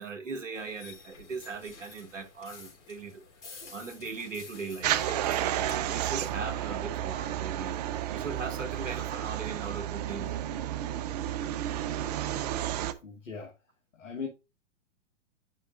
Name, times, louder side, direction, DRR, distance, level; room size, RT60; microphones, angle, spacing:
voice 1, 0.0-5.2 5.6-7.8 8.1-10.4 12.8-13.0, right 4 dB, 80° right, 1.3 m, -39 dB
sound 1, 0.5-6.3, left 5 dB, 65° left, 3.8 m, -50 dB
sound 2, 4.8-12.9, right 12 dB, 35° right, 0.5 m, -32 dB
voice 2, 13.0-13.5 13.9-14.3, left 5 dB, 80° left, 1.4 m, -38 dB
9.8 x 4.8 x 2.4 m
figure-of-eight pair, 115°, 37 cm